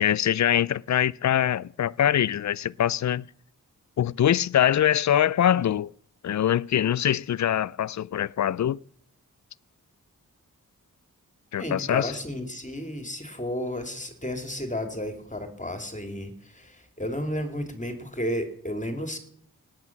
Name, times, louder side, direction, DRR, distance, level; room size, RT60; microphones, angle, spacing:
voice 1, 0.0-3.2 4.0-5.9 6.2-8.8 11.5-12.1, left 10 dB, 55° left, 0.5 m, -23 dB
voice 2, 11.6-19.2, equal, 20° left, 2.9 m, -32 dB
18.5 x 9.2 x 6.1 m
cardioid pair, 40°, 34 cm